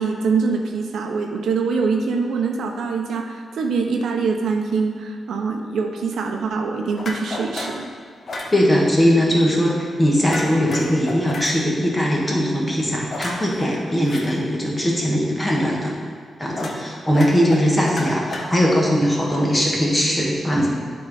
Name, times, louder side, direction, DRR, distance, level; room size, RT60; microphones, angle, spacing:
voice 1, 0.0-7.9, right 4 dB, 80° right, 3 dB, 0.7 m, -24 dB
sound 1, 7.0-7.8 8.3-8.5 10.3-11.5 13.1-14.2 16.5-16.8 17.1-18.8, left 2 dB, 50° left, 0.9 m, -31 dB
voice 2, 8.5-15.9 16.4-20.7, equal, 15° left, -2 dB, 1.3 m, -20 dB
10.5 x 3.9 x 4.0 m, 2.1 s
wide cardioid pair, 135°, 0 cm